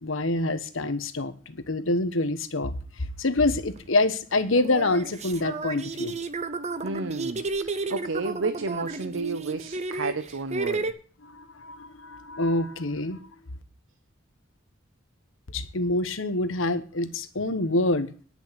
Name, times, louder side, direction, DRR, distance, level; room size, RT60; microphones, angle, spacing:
voice 1, 0.0-6.2 11.2-13.2 15.5-18.1, left 2 dB, 80° left, 1.2 m, -26 dB
sound 1, 3.8-3.9 4.5-10.9, right 3 dB, 35° right, 0.8 m, -32 dB
voice 2, 6.8-10.9, right 3 dB, 70° right, 0.7 m, -32 dB
10.0 x 6.2 x 8.6 m
head